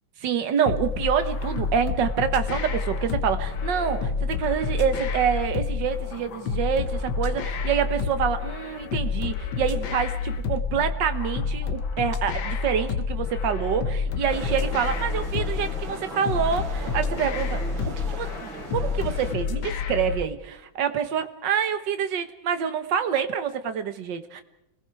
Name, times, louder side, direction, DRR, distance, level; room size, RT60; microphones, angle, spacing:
voice 1, 0.2-17.6 17.9-24.4, right 7 dB, 65° right, 9 dB, 1.9 m, -27 dB
sound 1, 0.7-20.3, left 5 dB, 80° left, 2.0 m, -29 dB
sound 2, 14.3-19.3, right 3 dB, 85° right, 3.8 m, -38 dB
29.5 x 20.5 x 4.8 m, 0.82 s
omnidirectional pair, 2.1 m